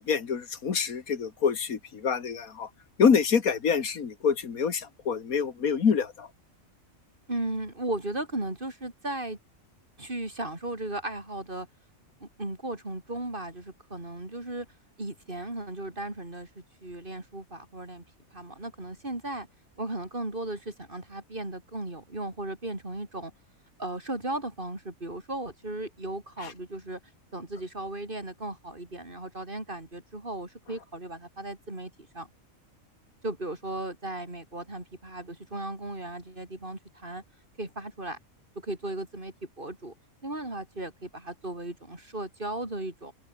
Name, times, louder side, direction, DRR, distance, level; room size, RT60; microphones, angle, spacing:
voice 1, 0.0-2.7 3.0-6.3, left 6 dB, 90° left, 2.2 m, -26 dB
voice 2, 7.3-9.4 10.0-11.7 12.2-14.7 15.0-18.0 18.3-19.5 19.8-23.3 23.8-27.0 27.3-32.3 33.2-37.2 37.6-38.2 38.6-39.9 40.2-43.1, right 1 dB, 35° right, 4.9 m, -36 dB
open air
omnidirectional pair, 1.4 m